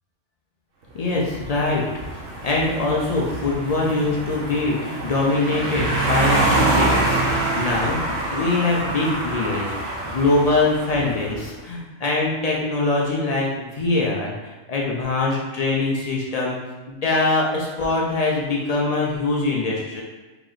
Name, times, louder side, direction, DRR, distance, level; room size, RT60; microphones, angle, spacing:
voice 1, 0.9-1.8 2.4-8.0 8.3-14.4 14.7-16.6 16.9-20.0, left 2 dB, 60° left, -2 dB, 0.4 m, -23 dB
sound 1, 1.1-11.4, right 2 dB, 75° right, 1.1 m, -25 dB
3.0 x 2.9 x 3.8 m, 1.2 s
omnidirectional pair, 1.3 m